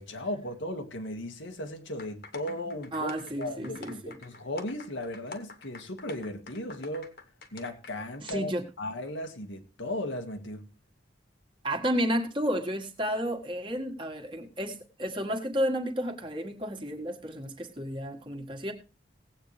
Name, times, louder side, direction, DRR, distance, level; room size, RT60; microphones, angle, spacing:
voice 1, 0.0-3.1 3.4-7.1 7.5-8.5 8.8-10.7, left 1 dB, 90° left, 1.8 m, -36 dB
sound 1, 2.0-7.9 8.3-8.4, left 3 dB, 55° left, 1.6 m, -46 dB
voice 2, 2.9-4.2 8.2-8.6 11.6-18.7, equal, 25° right, 1.7 m, -32 dB
18.0 x 8.6 x 3.3 m
head